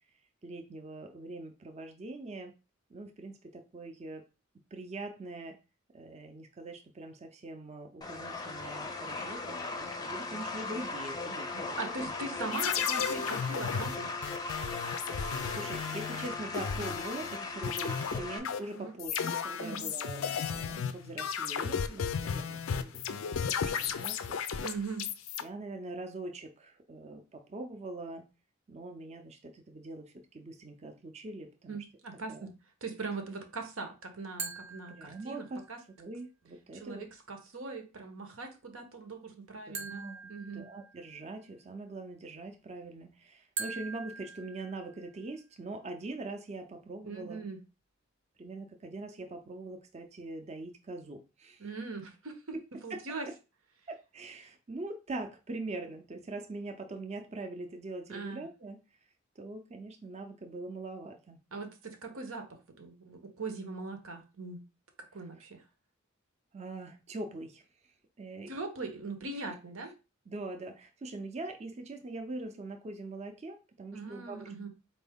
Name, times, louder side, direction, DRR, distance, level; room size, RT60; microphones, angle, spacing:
voice 1, 0.4-2.5 2.9-4.2 4.7-5.6 5.9-12.1 12.4-12.5 15.1-24.4 25.4-28.2 28.7-31.8 32.3-32.5 35.0-35.6 36.0-37.1 39.7-47.4 48.4-51.7 52.9-53.0 53.9-58.8 59.4-61.4 66.5-67.6 68.2-68.5 70.3-74.7, right 2 dB, 35° right, 4 dB, 0.5 m, -43 dB
sound 1, 8.0-18.4, left 3 dB, 20° left, 0.5 m, -38 dB
voice 2, 11.8-14.1 18.7-18.9 19.6-19.9 24.6-25.1 31.7-32.5 32.8-35.8 36.7-40.7 47.0-47.6 51.6-52.6 52.8-53.3 58.1-58.5 61.5-64.6 65.1-65.6 68.5-69.9 73.9-74.7, right 3 dB, 90° right, 5 dB, 1.0 m, -40 dB
sound 2, 12.5-17.4 17.6-25.4, left 7 dB, 85° left, 0.4 m, -34 dB
sound 3, 34.4-35.7 39.7-41.3 43.6-45.3, right 4 dB, 60° right, 0.8 m, -42 dB
4.3 x 2.6 x 3.5 m, 0.30 s
head